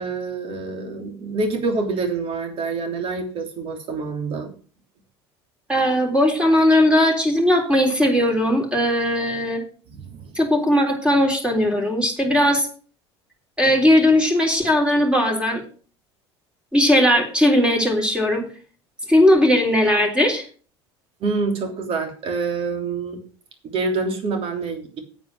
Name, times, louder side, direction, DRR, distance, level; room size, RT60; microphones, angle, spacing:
voice 1, 0.0-4.5 9.9-10.3 21.2-23.2 23.6-25.0, right 4 dB, 40° right, 5 dB, 3.2 m, -26 dB
voice 2, 5.7-9.6 10.4-12.7 13.6-15.6 16.7-18.5 19.1-20.4, left 1 dB, 5° right, 2 dB, 3.7 m, -18 dB
9.3 x 9.0 x 6.3 m, 0.41 s
figure-of-eight pair, 70°, 14 cm